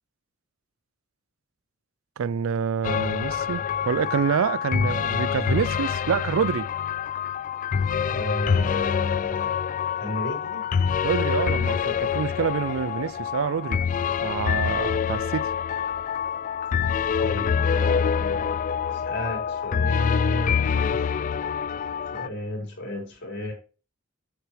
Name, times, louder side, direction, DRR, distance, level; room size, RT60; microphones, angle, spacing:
voice 1, 2.2-6.7 11.0-13.8 14.2-15.5, right 7 dB, 75° right, 0.4 m, -27 dB
sound 1, 2.8-22.3, left 7 dB, 40° left, 0.3 m, -26 dB
voice 2, 8.1-10.6 17.2-21.2 22.1-23.5, left 1 dB, 60° left, 4.9 m, -33 dB
8.1 x 7.9 x 3.2 m
head